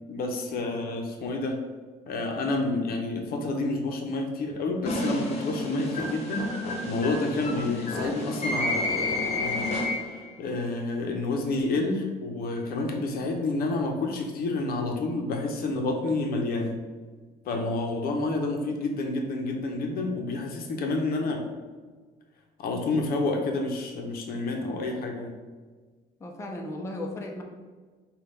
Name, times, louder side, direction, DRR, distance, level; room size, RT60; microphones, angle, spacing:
voice 1, 0.1-1.6 2.1-9.7 10.4-16.8 17.5-21.4 22.6-25.3, left 2 dB, 65° left, 3 dB, 0.7 m, -29 dB
sound 1, 4.9-10.3, left 2 dB, 40° left, 1.0 m, -30 dB
voice 2, 26.2-27.4, left 1 dB, 15° left, 1 dB, 0.5 m, -35 dB
5.3 x 2.3 x 3.4 m, 1.4 s
cardioid pair, 110°, 17 cm